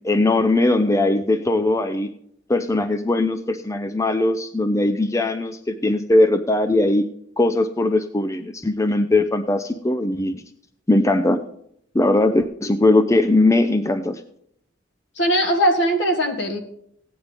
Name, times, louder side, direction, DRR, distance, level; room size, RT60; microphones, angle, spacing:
voice 1, 0.0-2.1 2.5-7.1 7.4-10.4 10.9-11.4 11.9-14.2, left 2 dB, 15° left, 9 dB, 0.5 m, -20 dB
voice 2, 15.2-16.6, equal, 65° left, 3 dB, 2.0 m, -20 dB
16.0 x 9.7 x 3.4 m, 0.70 s
head